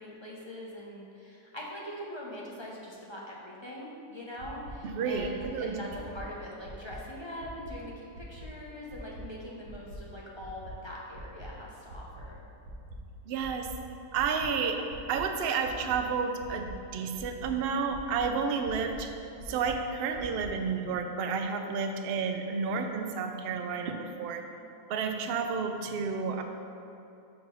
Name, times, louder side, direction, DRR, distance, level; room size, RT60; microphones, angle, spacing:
voice 1, 0.0-12.4, equal, 40° left, -5 dB, 0.4 m, -42 dB
sound 1, 4.4-4.7 5.1-5.5 5.9-6.2 6.6-7.0 7.4-7.7 8.1-8.5 8.9-9.2 9.6-10.0 10.4-10.7 11.1-11.5 11.9-12.2 12.6-13.0 13.4-13.7 14.1-14.5 14.9-15.2 15.6-16.0 16.4-16.7 17.1-17.5 17.9-18.2 18.6-19.0 19.4-19.7 20.1-20.5, right 1 dB, 65° right, 1.2 m, -46 dB
voice 2, 4.8-5.8 13.3-13.7 14.1-14.8 15.1-19.1 19.5-24.4 24.9-26.4, right 5 dB, 85° right, 5 dB, 0.5 m, -31 dB
5.5 x 4.4 x 5.5 m, 2.8 s
omnidirectional pair, 1.6 m